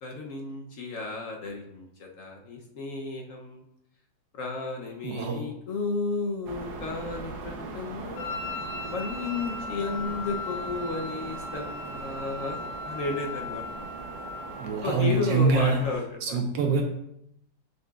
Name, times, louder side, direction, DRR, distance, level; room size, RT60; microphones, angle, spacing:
voice 1, 0.0-3.6 4.3-8.3 8.9-12.6 12.8-13.6 14.8-16.4, left 3 dB, 55° left, 1 dB, 1.0 m, -33 dB
voice 2, 5.0-5.5 14.6-15.8 16.2-16.8, right 4 dB, 80° right, 2 dB, 1.4 m, -25 dB
sound 1, 6.5-15.9, right 3 dB, 65° right, 1.3 m, -40 dB
Wind instrument woodwind instrument, 8.2-14.8, left 3 dB, 75° left, 1.5 m, -38 dB
6.6 x 6.5 x 2.4 m, 0.77 s
omnidirectional pair, 2.0 m